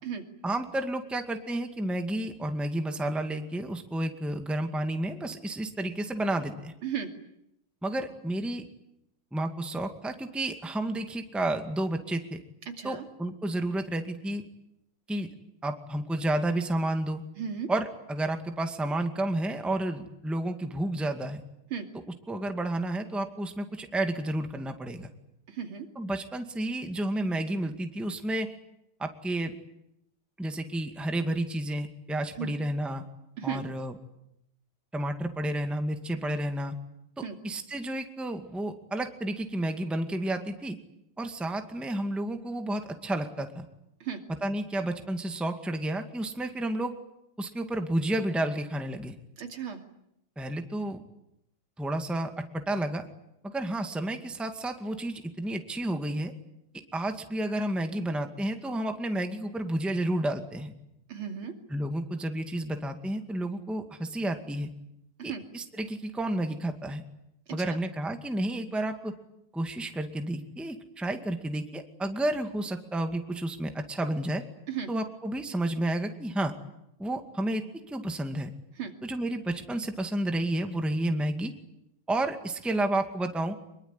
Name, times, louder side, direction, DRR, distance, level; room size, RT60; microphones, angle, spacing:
voice 1, 0.4-6.7 7.8-8.6 9.3-12.4 12.8-14.4 15.1-15.3 15.6-17.2 17.7-21.4 22.3-25.1 26.0-28.5 29.0-29.5 30.4-33.0 33.4-33.9 34.9-36.7 37.2-40.8 41.2-43.7 44.4-47.0 47.4-49.1 50.4-51.0 51.8-53.1 53.4-56.3 56.9-60.7 61.7-64.7 65.2-67.0 67.5-69.1 69.5-74.4 74.9-76.5 77.0-78.5 79.0-81.5 82.1-83.6, right 1 dB, ahead, 6 dB, 1.9 m, -31 dB
voice 2, 12.7-13.0 17.4-17.7 21.7-21.9 25.5-25.9 32.4-32.5 33.4-33.6 37.2-37.4 44.0-44.2 49.4-49.8 61.1-61.5 65.2-65.4 67.5-67.8 74.7-74.9 78.8-78.9, right 8 dB, 70° right, 5 dB, 3.4 m, -35 dB
24.5 x 23.0 x 9.8 m, 0.79 s
omnidirectional pair, 2.4 m